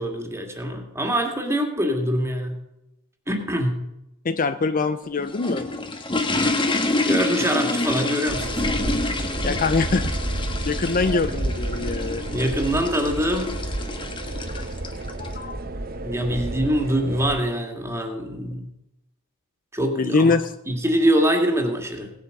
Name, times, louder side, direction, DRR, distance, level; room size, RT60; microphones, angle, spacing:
voice 1, 0.0-2.6 3.3-3.7 7.1-8.7 12.3-13.6 16.0-18.7 19.7-20.3 20.7-22.1, equal, 15° right, 3 dB, 2.3 m, -24 dB
voice 2, 4.2-5.7 9.4-12.2 14.5-14.6 15.2-15.6 19.9-20.5, left 4 dB, 40° left, 11 dB, 0.5 m, -24 dB
sound 1, 5.0-15.3, left 2 dB, 25° left, 1.4 m, -28 dB
sound 2, 8.3-17.4, right 1 dB, 45° right, 1.1 m, -30 dB
17.5 x 8.5 x 6.7 m, 0.90 s
head